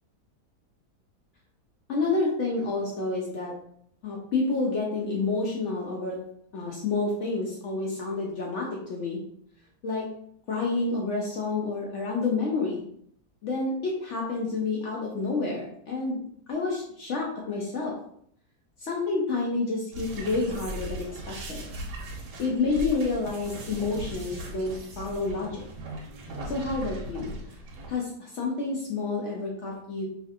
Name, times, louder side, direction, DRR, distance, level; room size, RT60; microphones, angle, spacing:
voice 1, 1.9-3.5 4.0-6.2 6.5-9.2 9.8-10.0 10.5-12.8 13.4-16.2 16.5-17.9 18.8-21.6 22.4-25.6 26.5-27.3 27.9-30.1, left 3 dB, 70° left, -2 dB, 0.7 m, -29 dB
sound 1, 19.9-28.0, right 1 dB, 85° right, 1.3 m, -38 dB
3.1 x 2.8 x 2.5 m, 0.67 s
omnidirectional pair, 1.8 m